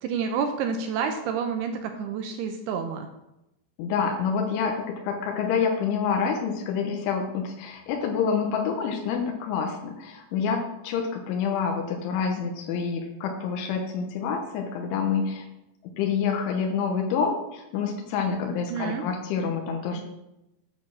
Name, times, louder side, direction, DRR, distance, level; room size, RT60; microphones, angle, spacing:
voice 1, 0.0-3.1 18.7-19.0, right 6 dB, 80° right, 5 dB, 2.3 m, -29 dB
voice 2, 3.8-15.5 15.8-20.0, left 6 dB, 90° left, 2 dB, 3.4 m, -27 dB
9.1 x 6.4 x 6.2 m, 0.90 s
omnidirectional pair, 5.4 m